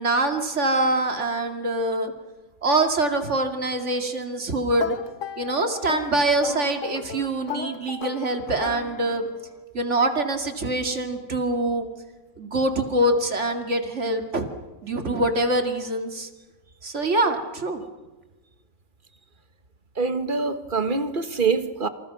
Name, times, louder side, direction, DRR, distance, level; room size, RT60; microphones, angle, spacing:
voice 1, 0.0-2.1 2.6-5.0 5.4-9.3 9.7-11.9 12.4-14.5 14.8-16.3 16.8-17.8, right 2 dB, 65° right, 2.7 m, -24 dB
sound 1, 4.8-9.4, left 7 dB, 80° left, 1.4 m, -35 dB
voice 2, 20.0-21.9, right 4 dB, 40° right, 1.6 m, -24 dB
28.0 x 27.0 x 6.0 m
omnidirectional pair, 1.3 m